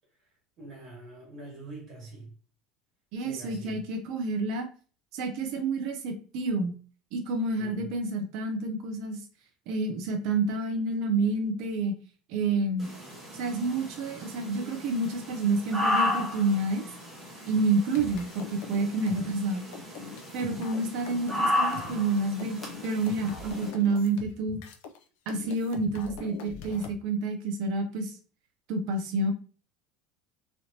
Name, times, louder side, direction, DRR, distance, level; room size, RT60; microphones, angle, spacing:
voice 1, 0.2-2.3 3.2-3.8 7.6-7.9, right 2 dB, 30° right, -4 dB, 1.5 m, -45 dB
voice 2, 3.1-4.7 5.1-6.7 7.1-9.2 9.7-11.9 12.3-12.9 13.3-16.8 17.5-19.6 20.3-24.6 25.3-28.2 28.7-29.3, right 3 dB, 50° right, 5 dB, 0.5 m, -29 dB
sound 1, 12.8-23.7, left 1 dB, ahead, 0.8 m, -34 dB
sound 2, 17.6-25.0 25.3-26.9, left 5 dB, 70° left, 0.5 m, -42 dB
3.1 x 2.8 x 2.7 m, 0.40 s
cardioid pair, 175°, 0 cm